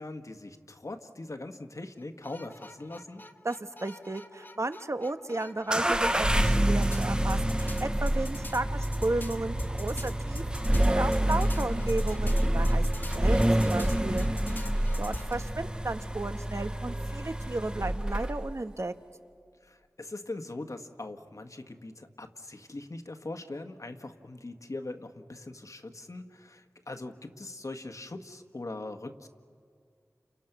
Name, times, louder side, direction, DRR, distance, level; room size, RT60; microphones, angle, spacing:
voice 1, 0.0-3.2 8.4-8.8 14.1-14.4 19.6-29.3, left 2 dB, 55° left, 7 dB, 1.5 m, -41 dB
sound 1, 2.0-6.5 6.8-15.3, left 1 dB, 30° left, 1.5 m, -43 dB
voice 2, 3.4-12.9 13.1-14.4 15.0-18.9, right 2 dB, 50° right, 9 dB, 1.1 m, -34 dB
sound 2, 5.7-18.6, right 1 dB, 15° right, 0.8 m, -28 dB
sound 3, 6.4-13.4, right 2 dB, 35° right, 1.7 m, -40 dB
30.0 x 28.5 x 6.1 m, 2.2 s
wide cardioid pair, 40°, 6 cm